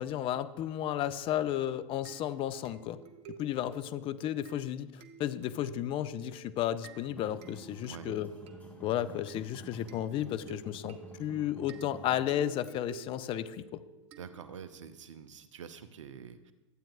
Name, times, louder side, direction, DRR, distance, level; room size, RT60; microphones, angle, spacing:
voice 1, 0.0-3.0 3.4-8.3 8.8-13.8, left 11 dB, 35° left, 14 dB, 0.5 m, -33 dB
sound 1, 2.0-14.8, right 5 dB, 40° right, 0.9 m, -52 dB
sound 2, 7.0-12.3, right 2 dB, 10° left, 2.5 m, -51 dB
voice 2, 14.2-16.5, right 7 dB, 75° right, 11 dB, 0.7 m, -47 dB
14.0 x 8.8 x 2.4 m, 1.1 s
figure-of-eight pair, 95°, 16 cm